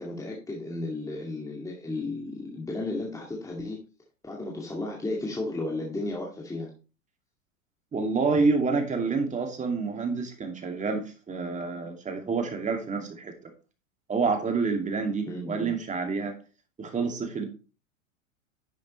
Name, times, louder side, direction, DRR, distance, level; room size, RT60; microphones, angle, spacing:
voice 1, 0.0-3.8 4.2-6.7 15.3-15.7, left 2 dB, 10° left, -2 dB, 2.2 m, -34 dB
voice 2, 7.9-13.3 14.1-16.3 16.8-17.5, right 4 dB, 20° right, 4 dB, 2.4 m, -28 dB
11.0 x 7.2 x 3.2 m, 0.33 s
hypercardioid pair, 110°, 40 cm